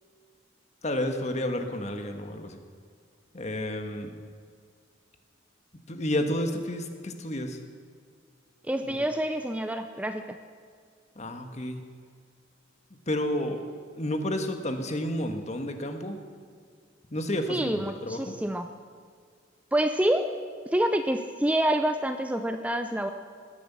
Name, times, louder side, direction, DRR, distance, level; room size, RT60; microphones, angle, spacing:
voice 1, 0.8-2.6 3.3-4.1 5.9-7.6 8.9-9.0 11.1-11.8 13.1-13.6 14.0-16.2 17.1-18.3, left 1 dB, 35° left, 6 dB, 1.5 m, -31 dB
voice 2, 8.7-10.2 17.5-18.7 19.7-20.2 20.7-23.1, right 1 dB, 5° right, 7 dB, 0.5 m, -27 dB
18.0 x 11.0 x 7.4 m, 2.1 s
head